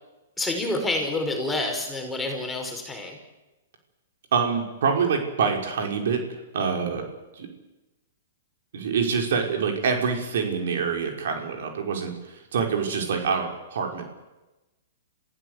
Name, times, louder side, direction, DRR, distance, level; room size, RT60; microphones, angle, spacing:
voice 1, 0.4-3.2, left 2 dB, 10° left, 2 dB, 5.1 m, -28 dB
voice 2, 4.3-6.2 6.5-7.1 7.3-7.5 8.7-14.1, right 6 dB, 70° right, 3 dB, 5.3 m, -26 dB
27.5 x 15.5 x 8.2 m, 1.1 s
hypercardioid pair, 135°, 0 cm